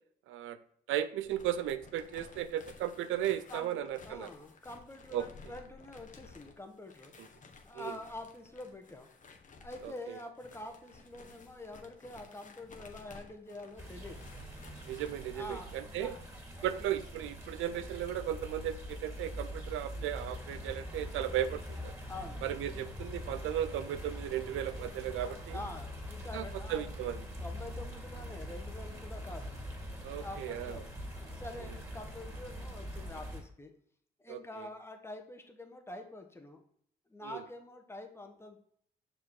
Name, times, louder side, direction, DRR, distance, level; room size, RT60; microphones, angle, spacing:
voice 1, 0.3-0.6 0.9-4.3 5.1-5.3 7.7-7.9 9.8-9.9 14.8-16.1 16.6-21.9 22.4-25.6 26.3-27.2 30.0-30.8 34.3-34.4 37.2-37.4, right 11 dB, 85° right, 12 dB, 0.6 m, -35 dB
sound 1, 1.2-15.3, left 4 dB, 40° left, 1.2 m, -55 dB
voice 2, 3.5-7.1 7.6-9.1 9.6-14.3 15.0-16.2 16.6-16.7 22.1-22.4 25.1-26.9 27.4-29.6 30.1-30.9 31.2-33.7 34.2-36.6 37.1-38.6, left 2 dB, 10° left, 4 dB, 1.2 m, -46 dB
sound 2, 13.8-33.4, equal, 15° right, 2.6 m, -43 dB
6.2 x 4.9 x 3.8 m, 0.66 s
cardioid pair, 90°, 20 cm